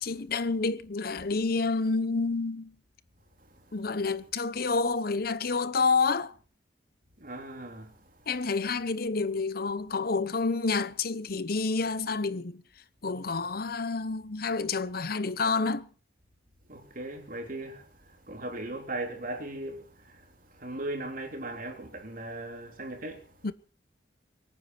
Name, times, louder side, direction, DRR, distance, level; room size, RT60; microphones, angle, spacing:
voice 1, 0.0-2.7 3.7-6.3 8.3-12.6 13.0-15.9 23.4-23.5, left 4 dB, 55° left, 0.9 m, -29 dB
voice 2, 7.2-8.0 16.7-23.3, right 2 dB, 50° right, 3.5 m, -38 dB
23.5 x 9.7 x 5.9 m
head